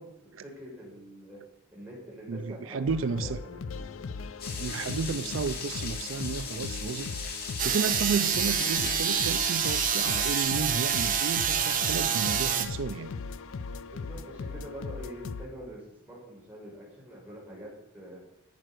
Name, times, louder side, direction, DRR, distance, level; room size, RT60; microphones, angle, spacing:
voice 1, 0.0-1.4 1.7-3.9 13.9-18.2, equal, 10° right, -5 dB, 5.7 m, -45 dB
voice 2, 2.3-3.4 4.6-13.1, right 5 dB, 70° right, 13 dB, 0.5 m, -33 dB
sound 1, 2.9-15.5, left 4 dB, 80° left, 0.5 m, -38 dB
sound 2, 4.4-10.4, left 5 dB, 50° left, 2.7 m, -38 dB
sound 3, 7.6-12.7, right 8 dB, 45° right, 1.3 m, -27 dB
11.0 x 8.9 x 6.3 m, 0.83 s
head